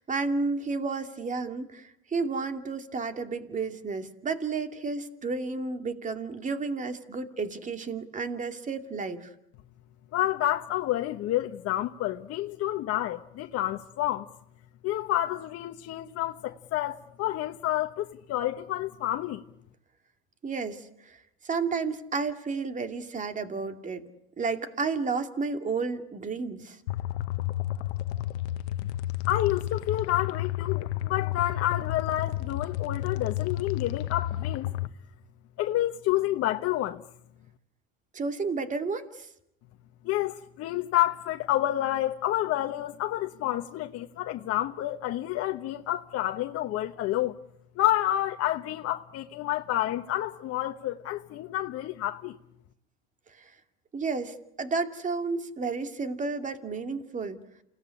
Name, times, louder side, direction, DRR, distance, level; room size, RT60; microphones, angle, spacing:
voice 1, 0.0-9.3 20.4-21.2 21.4-24.0 24.4-26.8 38.1-39.3 53.4-53.5 53.9-57.4, right 4 dB, 25° right, 2.5 m, -32 dB
voice 2, 10.1-14.3 14.8-19.4 29.3-34.7 35.6-37.0 40.0-47.4 47.8-52.4, left 14 dB, 45° left, 1.2 m, -29 dB
sound 1, 26.9-34.9, left 14 dB, 80° left, 1.0 m, -31 dB
28.5 x 18.0 x 9.9 m
supercardioid pair, 110°, 32 cm